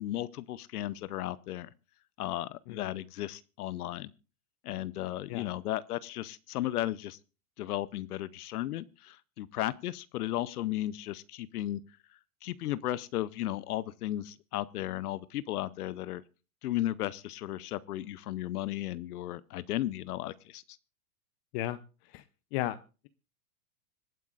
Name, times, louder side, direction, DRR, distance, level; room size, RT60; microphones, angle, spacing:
voice 1, 0.0-1.7 2.2-4.1 4.6-7.2 7.6-11.8 12.4-16.2 16.6-20.8, left 14 dB, 80° left, 17 dB, 0.7 m, -35 dB
voice 2, 2.7-2.9 5.3-5.5 21.5-21.8 22.1-22.2 22.5-22.8, left 15 dB, 45° left, 13 dB, 0.7 m, -33 dB
25.5 x 9.2 x 2.4 m, 0.34 s
hypercardioid pair, 125°, 45 cm